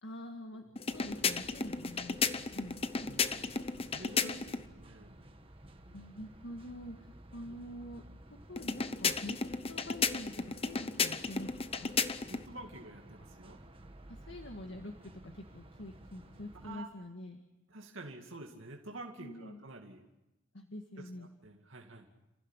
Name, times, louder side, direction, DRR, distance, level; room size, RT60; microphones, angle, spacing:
voice 1, 0.0-3.1 4.2-5.3 5.9-9.4 9.7-11.9 14.1-17.4 19.2-19.7 20.5-21.3, left 1 dB, 65° left, 4 dB, 1.9 m, -46 dB
sound 1, 0.8-4.6 8.6-12.5, left 5 dB, 30° left, 0.8 m, -34 dB
sound 2, 0.9-16.8, right 1 dB, 25° right, 1.5 m, -54 dB
voice 2, 3.1-3.5 3.8-4.4 4.7-5.2 7.4-7.6 12.3-13.6 16.6-16.9 17.7-20.0 21.0-22.1, right 2 dB, 75° right, 1 dB, 2.4 m, -49 dB
29.5 x 15.5 x 9.1 m, 0.99 s
head